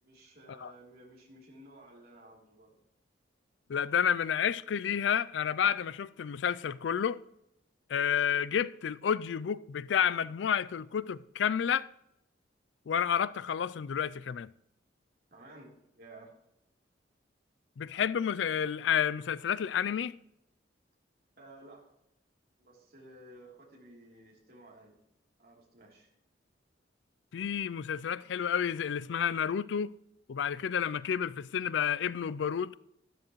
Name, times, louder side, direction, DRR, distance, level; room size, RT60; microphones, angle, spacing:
voice 1, 0.0-2.8 15.3-16.3 21.4-21.9 22.6-25.0 25.4-26.1, right 1 dB, 55° right, 3.3 m, -54 dB
voice 2, 3.7-7.2 7.9-11.9 12.9-14.5 17.8-20.1 27.3-29.9 30.3-32.7, left 8 dB, 80° left, 0.4 m, -30 dB
12.5 x 12.5 x 3.1 m
head